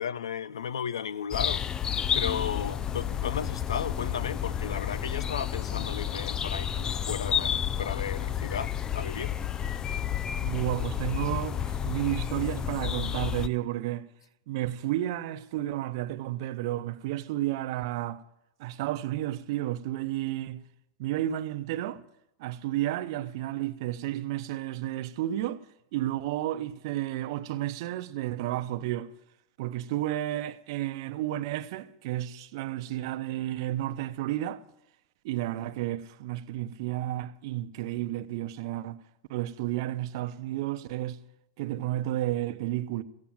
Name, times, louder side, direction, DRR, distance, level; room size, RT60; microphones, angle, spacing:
voice 1, 0.0-1.7 2.1-9.4, left 8 dB, 90° left, 0.6 m, -34 dB
sound 1, 1.3-13.5, left 9 dB, 25° left, 0.5 m, -31 dB
voice 2, 10.4-14.1 14.5-18.2 18.6-20.7 21.0-22.0 22.4-25.6 25.9-29.1 29.6-34.6 35.2-39.0 39.3-41.2 41.6-43.0, right 14 dB, 60° right, 0.8 m, -32 dB
15.5 x 8.7 x 7.6 m
hypercardioid pair, 115°, 3 cm